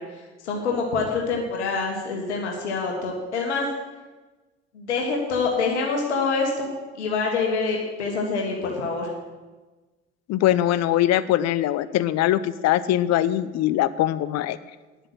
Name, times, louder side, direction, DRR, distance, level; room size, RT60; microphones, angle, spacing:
voice 1, 0.0-3.7 4.7-6.7 6.9-9.1, left 4 dB, 80° left, 0 dB, 1.6 m, -26 dB
voice 2, 10.3-14.6, left 13 dB, 50° left, 16 dB, 0.7 m, -22 dB
10.0 x 7.7 x 7.9 m, 1.2 s
hypercardioid pair, 60°, 33 cm